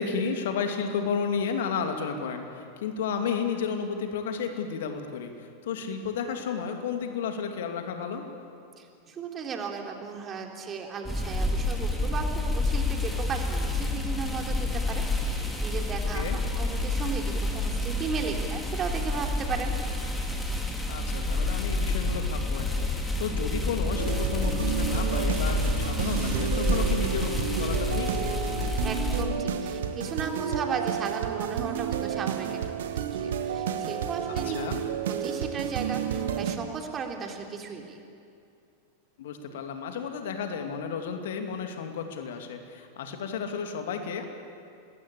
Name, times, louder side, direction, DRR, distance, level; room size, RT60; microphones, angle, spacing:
voice 1, 0.0-8.3 16.1-16.4 20.9-28.1 34.3-34.8 39.2-44.3, left 6 dB, 55° left, 5 dB, 2.7 m, -32 dB
voice 2, 8.8-19.7 28.8-34.6 35.2-38.0 39.5-39.6, right 5 dB, 25° right, 2 dB, 3.4 m, -35 dB
sound 1, 11.0-29.2, left 2 dB, 5° left, 3.3 m, -29 dB
sound 2, 24.0-36.6, right 8 dB, 60° right, 1.6 m, -31 dB
26.0 x 20.5 x 8.7 m, 2.5 s
figure-of-eight pair, 90°, 0 cm